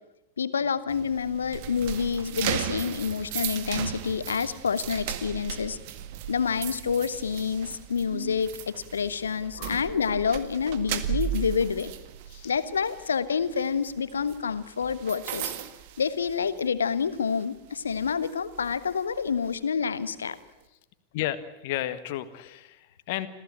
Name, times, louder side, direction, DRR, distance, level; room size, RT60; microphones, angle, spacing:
voice 1, 0.4-5.8 6.3-11.9 12.4-15.5 16.0-20.4, left 6 dB, 70° left, 14 dB, 1.3 m, -28 dB
sound 1, 0.9-16.8 17.1-17.4 17.9-19.6, right 11 dB, 50° right, 1.8 m, -36 dB
voice 2, 9.6-9.9 12.3-12.5 21.1-23.3, left 13 dB, 50° left, 11 dB, 1.7 m, -33 dB
26.5 x 16.0 x 8.8 m, 1.0 s
figure-of-eight pair, 90°, 0 cm